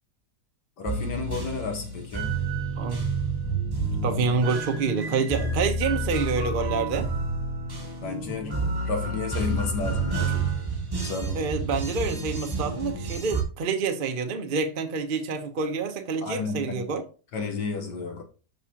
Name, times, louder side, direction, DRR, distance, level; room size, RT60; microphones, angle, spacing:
voice 1, 0.8-2.3 8.0-10.5 11.0-11.5 16.2-16.9 17.3-18.2, left 4 dB, 75° left, 1.7 m, -32 dB
sound 1, 0.9-13.4, right 3 dB, 15° right, 1.4 m, -29 dB
voice 2, 2.8-3.2 4.0-7.1 11.3-17.0, right 4 dB, 40° right, 0.8 m, -27 dB
13.0 x 4.8 x 2.9 m
omnidirectional pair, 1.9 m